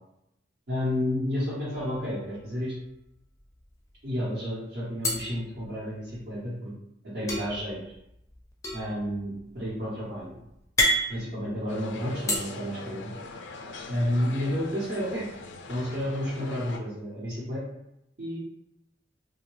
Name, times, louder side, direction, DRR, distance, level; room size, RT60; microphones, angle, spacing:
voice 1, 0.7-2.7 4.0-6.7 7.1-7.9 8.7-10.4 11.1-13.1 13.9-15.2 15.7-17.6 18.2-18.4, equal, 65° right, -8 dB, 1.0 m, -31 dB
sound 1, 1.7-2.6 2.9-3.1 3.4-4.1 5.0-6.3 7.3-12.4, left 1 dB, 15° left, 0.4 m, -31 dB
sound 2, 11.7-16.8, left 3 dB, 80° left, 0.4 m, -42 dB
2.6 x 2.2 x 3.1 m, 0.82 s
head